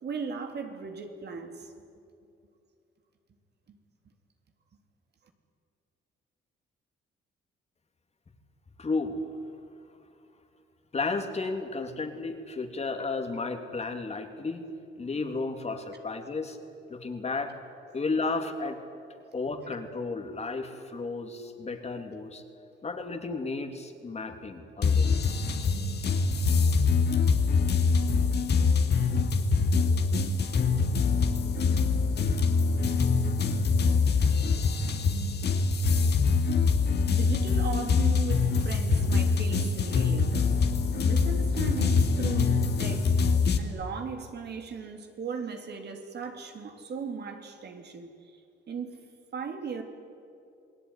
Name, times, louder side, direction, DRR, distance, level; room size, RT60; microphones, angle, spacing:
voice 1, 0.0-1.7 3.7-3.8 27.4-27.5 37.0-40.5 40.9-43.2 43.6-48.1 48.7-49.0 49.3-49.8, right 5 dB, 55° right, 4 dB, 3.4 m, -37 dB
voice 2, 8.8-9.3 10.9-14.7 15.0-16.6 16.9-17.5 17.9-18.8 19.3-22.4 22.8-25.3, left 3 dB, 35° left, 5 dB, 3.0 m, -33 dB
sound 1, 24.8-43.6, left 4 dB, 55° left, 2.5 m, -24 dB
28.0 x 19.5 x 9.8 m, 2.5 s
cardioid pair, 90°, 20 cm